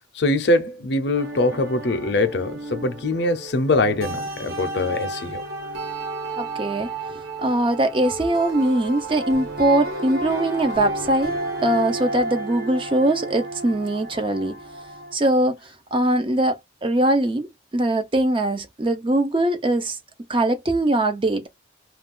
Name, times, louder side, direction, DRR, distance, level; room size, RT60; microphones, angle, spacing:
voice 1, 0.1-5.4, left 2 dB, 60° left, 0.5 m, -23 dB
sound 1, 1.1-15.2, right 2 dB, 55° right, 1.1 m, -32 dB
voice 2, 6.4-6.9 7.4-11.3 11.6-14.5 15.1-15.6 15.9-17.5 17.7-20.0 20.3-21.5, right 1 dB, 25° right, 0.5 m, -21 dB
2.3 x 2.3 x 3.6 m
head